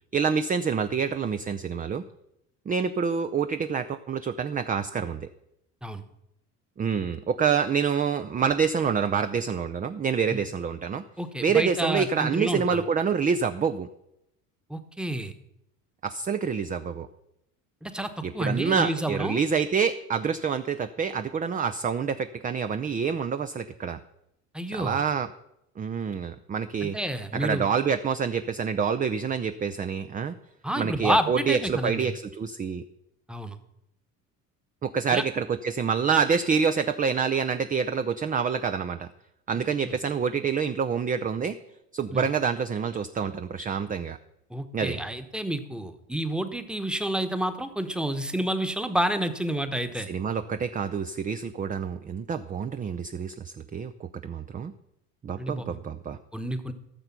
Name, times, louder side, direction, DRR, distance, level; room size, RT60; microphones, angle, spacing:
voice 1, 0.1-2.0 2.7-5.3 6.8-11.0 11.4-13.9 16.0-17.1 18.2-24.0 24.7-25.3 25.8-27.0 27.3-30.3 30.8-32.8 34.8-39.1 39.5-41.6 41.9-44.2 44.7-45.0 50.1-54.7 55.2-56.2, right 6 dB, 20° right, 9 dB, 0.5 m, -27 dB
voice 2, 11.2-12.8 14.7-15.3 17.8-19.4 24.5-25.0 26.8-27.7 30.6-32.1 33.3-33.6 35.1-35.2 39.8-40.0 42.1-42.2 44.5-50.1 55.3-55.8 56.3-56.7, right 1 dB, ahead, 8 dB, 1.1 m, -29 dB
14.0 x 6.7 x 5.9 m, 0.82 s
hypercardioid pair, 70°, 46 cm